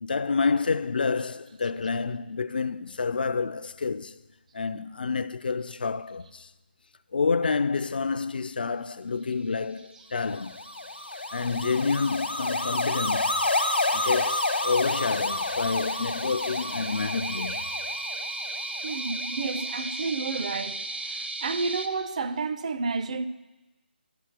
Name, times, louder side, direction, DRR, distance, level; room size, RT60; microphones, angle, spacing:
voice 1, 0.0-4.2 4.5-6.5 7.1-10.6 11.1-13.4 13.9-17.7, left 4 dB, 60° left, 0.3 m, -28 dB
sound 1, 9.7-21.9, right 2 dB, 80° right, 0.9 m, -37 dB
sound 2, 10.4-19.7, left 2 dB, 85° left, 0.9 m, -30 dB
voice 2, 13.6-14.0 18.8-23.3, right 4 dB, 40° right, 0.5 m, -31 dB
11.5 x 4.3 x 7.1 m
figure-of-eight pair, 150°, 6 cm